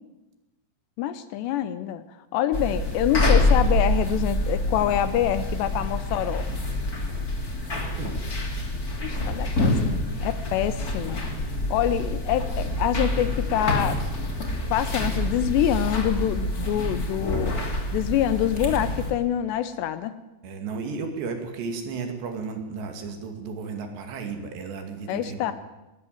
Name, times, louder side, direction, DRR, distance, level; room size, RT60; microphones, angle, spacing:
voice 1, 1.0-2.0 2.3-6.5 9.0-11.2 11.7-14.0 14.7-17.5 17.9-20.1 25.1-25.5, left 11 dB, 75° left, 13 dB, 2.8 m, -26 dB
sound 1, 2.5-19.1, left 1 dB, 25° left, 2.5 m, -26 dB
voice 2, 20.4-25.5, right 4 dB, 65° right, 5 dB, 4.5 m, -34 dB
20.0 x 19.0 x 9.3 m, 1.0 s
omnidirectional pair, 5.4 m